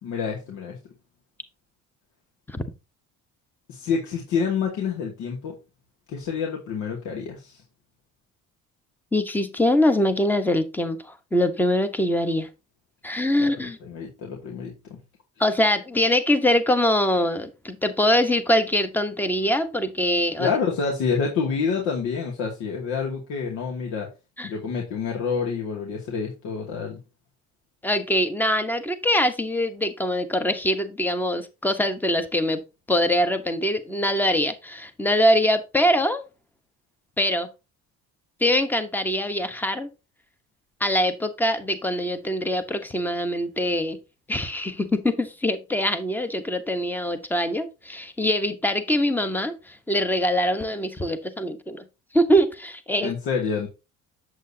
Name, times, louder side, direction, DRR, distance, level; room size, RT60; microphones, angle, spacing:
voice 1, 0.0-0.8 3.7-5.6 6.1-7.6 13.4-15.0 20.4-24.1 24.4-27.0 53.0-53.7, left 5 dB, 75° left, 0 dB, 2.4 m, -28 dB
voice 2, 9.1-12.5 13.0-13.8 15.4-20.5 24.4-24.5 27.8-32.6 32.9-36.2 37.2-37.5 38.4-39.9 40.8-44.0 44.3-51.8 52.1-53.1, left 1 dB, 5° left, 10 dB, 1.0 m, -23 dB
8.0 x 7.8 x 2.8 m, 0.27 s
cardioid pair, 150°, 29 cm